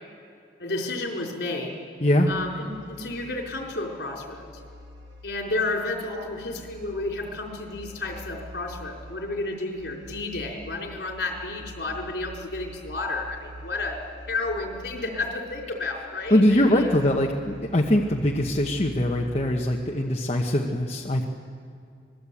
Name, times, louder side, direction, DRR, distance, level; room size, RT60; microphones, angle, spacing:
voice 1, 0.6-1.7 2.3-4.4 5.2-14.0 14.3-16.9, left 2 dB, 70° left, 0 dB, 4.4 m, -31 dB
sound 1, 2.3-20.5, equal, 90° right, 2.0 m, -46 dB
voice 2, 16.3-21.2, left 1 dB, 35° left, 0 dB, 1.1 m, -22 dB
24.5 x 20.0 x 8.5 m, 2.4 s
head